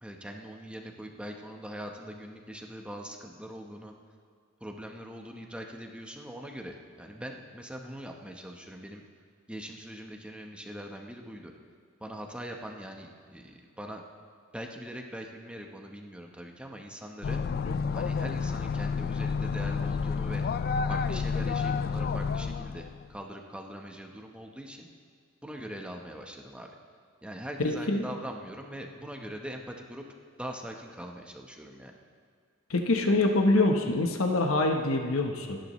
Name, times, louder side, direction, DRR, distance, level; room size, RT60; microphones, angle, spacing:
voice 1, 0.0-3.9 4.6-9.0 9.5-11.5 12.0-14.0 14.5-17.4 17.9-20.4 20.9-24.9 25.4-26.7 27.2-30.0 30.4-31.9, equal, 5° right, 2 dB, 1.0 m, -42 dB
sound 1, 17.2-23.1, left 5 dB, 45° left, 0.3 m, -30 dB
voice 2, 27.6-28.1 32.7-35.6, left 2 dB, 85° left, 3 dB, 1.1 m, -25 dB
29.0 x 10.5 x 3.1 m, 2.2 s
head